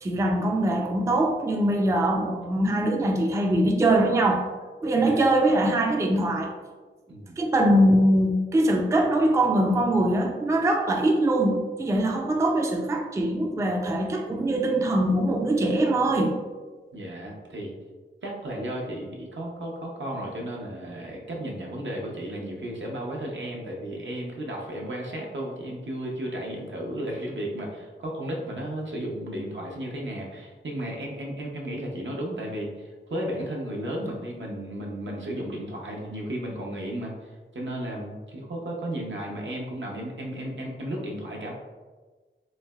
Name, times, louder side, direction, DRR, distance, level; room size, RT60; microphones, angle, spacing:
voice 1, 0.0-4.4 4.8-6.5 7.4-16.3, right 1 dB, 15° right, 1 dB, 0.3 m, -22 dB
voice 2, 5.0-5.3 7.1-7.4 16.9-17.8 18.2-41.5, right 1 dB, 70° right, -1 dB, 0.6 m, -34 dB
3.1 x 2.7 x 2.2 m, 1.4 s
wide cardioid pair, 55°, 20 cm